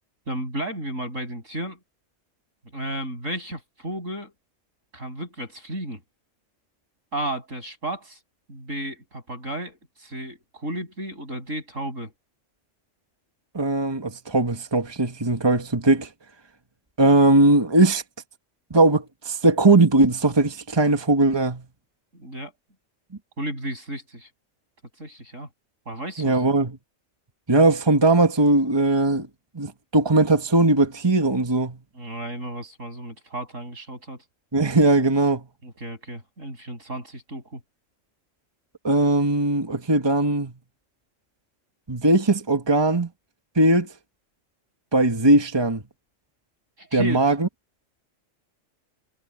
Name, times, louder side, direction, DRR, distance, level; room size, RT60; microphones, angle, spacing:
voice 1, 0.3-1.8 2.7-4.3 4.9-6.0 7.1-8.2 8.5-12.1 22.1-22.5 23.4-24.3 25.0-25.5 25.9-26.4 31.9-34.2 35.6-37.6 46.8-47.2, right 1 dB, 80° right, 8.6 m, -33 dB
voice 2, 13.5-16.1 17.0-18.0 18.7-21.6 26.2-26.8 27.5-29.3 29.5-31.8 34.5-35.4 38.8-40.5 41.9-43.1 43.5-43.9 44.9-45.8 46.9-47.5, right 2 dB, 20° right, 1.7 m, -19 dB
omnidirectional pair, 1.3 m